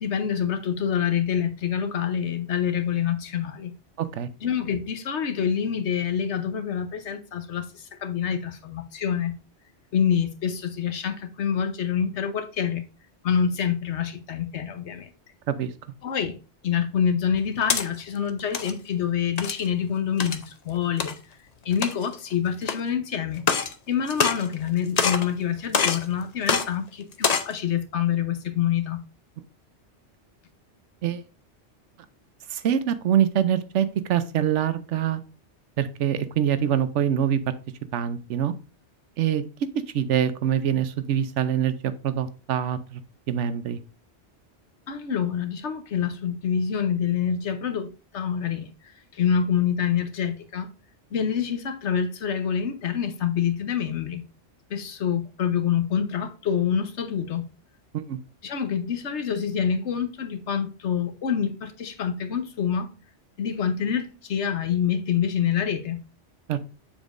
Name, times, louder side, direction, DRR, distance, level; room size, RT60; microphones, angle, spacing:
voice 1, 0.0-3.7 4.4-9.3 9.9-12.8 13.2-15.1 16.0-16.4 16.6-21.2 21.6-23.4 23.9-29.0 44.9-50.7 51.1-54.2 54.7-57.5 58.4-62.9 63.4-66.0, left 8 dB, 75° left, 1.2 m, -26 dB
voice 2, 4.0-4.3 15.5-15.7 31.0-31.2 32.5-35.2 35.8-37.5 37.9-38.5 39.2-39.4 39.9-43.0 43.3-43.8 57.9-58.2 66.5-66.6, right 9 dB, 85° right, 1.0 m, -24 dB
sound 1, 17.3-17.8 18.4-18.7 19.4-19.7 20.2-20.4 21.0-21.1 21.7-22.1 22.6-22.7 23.4-23.7 24.1-24.7 25.0-25.3 25.7-26.0 26.5-26.6 27.1-27.5, left 6 dB, 45° left, 0.6 m, -24 dB
7.1 x 7.1 x 2.5 m
omnidirectional pair, 1.2 m